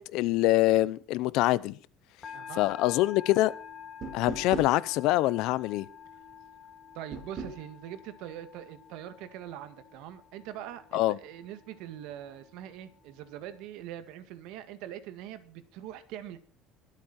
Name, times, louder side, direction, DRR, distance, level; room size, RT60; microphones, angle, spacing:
voice 1, 0.0-1.8 2.6-3.5 4.1-5.9 10.9-11.2, left 17 dB, 65° left, 0.7 m, -25 dB
sound 1, 2.2-13.6, left 7 dB, 25° left, 2.3 m, -49 dB
voice 2, 2.3-2.7 6.9-16.4, right 11 dB, 70° right, 2.0 m, -43 dB
sound 2, 4.0-4.8 7.1-7.6, right 4 dB, 35° right, 4.0 m, -37 dB
22.5 x 8.5 x 4.3 m
cardioid pair, 160°, 0 cm